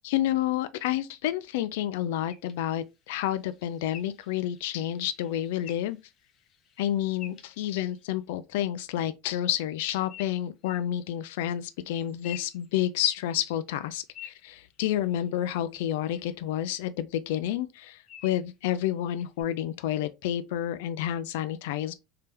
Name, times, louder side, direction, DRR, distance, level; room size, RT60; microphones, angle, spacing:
voice 1, 0.0-6.0 6.8-21.9, left 12 dB, 90° left, 0.3 m, -29 dB
sound 1, 2.3-8.2 10.1-10.9 11.9-13.3 13.7-15.4 16.0-16.2 16.7-16.8 18.1-18.5 19.2-19.4, left 11 dB, 45° left, 0.7 m, -50 dB
3.4 x 2.8 x 3.3 m
supercardioid pair, 140°, 0 cm